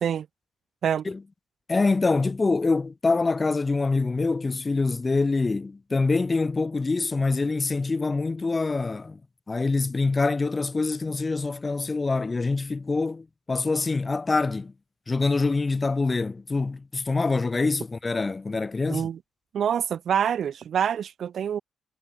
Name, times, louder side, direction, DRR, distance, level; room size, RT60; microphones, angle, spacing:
voice 1, 1.7-9.2 9.5-14.7 15.1-19.1, left 3 dB, 25° left, 2.0 m, -25 dB
voice 2, 19.5-21.6, right 8 dB, 60° right, 1.0 m, -26 dB
cardioid pair, 90°, 0 cm